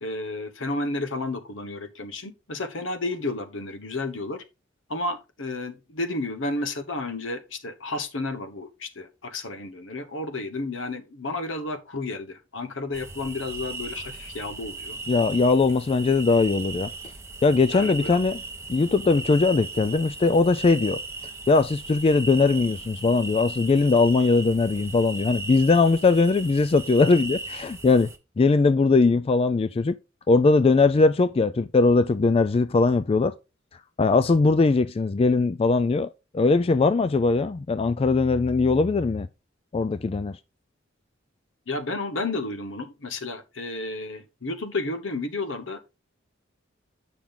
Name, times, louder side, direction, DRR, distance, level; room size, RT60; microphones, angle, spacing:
voice 1, 0.0-4.4 4.9-15.0 17.7-18.2 41.7-45.9, left 2 dB, 75° left, 1.1 m, -32 dB
sound 1, 12.9-28.2, right 3 dB, 15° right, 0.9 m, -37 dB
voice 2, 15.1-16.9 17.4-18.4 18.7-21.0 21.5-28.1 28.4-30.0 30.3-33.3 34.0-39.3 39.7-40.4, left 3 dB, 30° left, 0.3 m, -20 dB
8.8 x 6.0 x 3.7 m
head